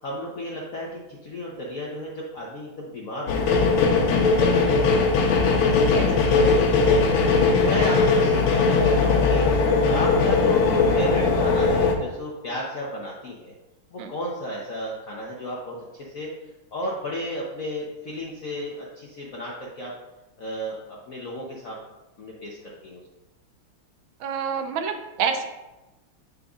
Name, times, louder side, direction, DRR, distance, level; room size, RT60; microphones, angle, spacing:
voice 1, 0.0-4.0 4.4-5.1 5.8-7.0 7.6-9.5 9.9-13.5 13.9-16.3 16.7-19.9 20.4-21.8 22.2-23.0, left 1 dB, 60° left, -3 dB, 0.8 m, -33 dB
sound 1, 3.3-12.0, left 4 dB, 90° left, 1.7 m, -19 dB
voice 2, 24.2-25.5, right 6 dB, 75° right, 6 dB, 1.4 m, -28 dB
8.2 x 5.1 x 2.4 m, 1.0 s
omnidirectional pair, 2.4 m